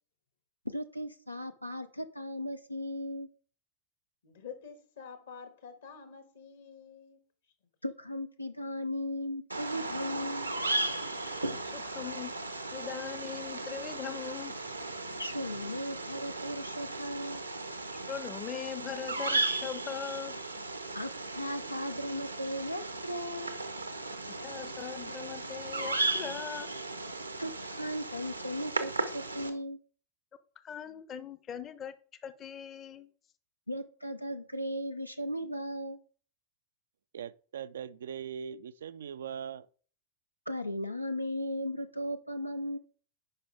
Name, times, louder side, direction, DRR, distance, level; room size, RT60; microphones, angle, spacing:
voice 1, 0.7-3.3 7.8-10.5 15.2-17.4 20.9-23.5 27.4-29.8 33.7-36.0 40.5-42.8, equal, 90° left, 0.5 m, -36 dB
voice 2, 4.2-7.2, left 6 dB, 60° left, 1.6 m, -48 dB
Bird vocalization bird call bird song, 9.5-29.5, right 2 dB, 85° right, 0.8 m, -36 dB
voice 3, 11.7-12.3 12.7-14.5 18.1-20.4 24.3-26.7 30.6-31.9 32.2-33.1, left 8 dB, 30° left, 0.7 m, -40 dB
voice 4, 37.1-39.7, right 8 dB, 65° right, 0.3 m, -40 dB
9.6 x 5.5 x 3.3 m
figure-of-eight pair, 90°, 0 cm